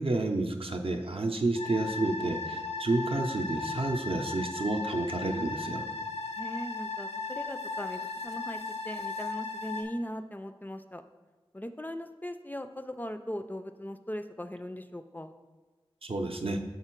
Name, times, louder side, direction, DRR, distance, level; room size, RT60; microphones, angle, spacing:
voice 1, 0.0-5.9 16.0-16.6, right 2 dB, 65° right, 4 dB, 0.5 m, -30 dB
sound 1, 1.6-9.8, left 3 dB, 90° left, 0.5 m, -36 dB
voice 2, 6.4-11.0 11.5-15.3, equal, 15° left, 8 dB, 0.3 m, -39 dB
5.7 x 3.7 x 4.5 m, 1.3 s
wide cardioid pair, 40°, 10 cm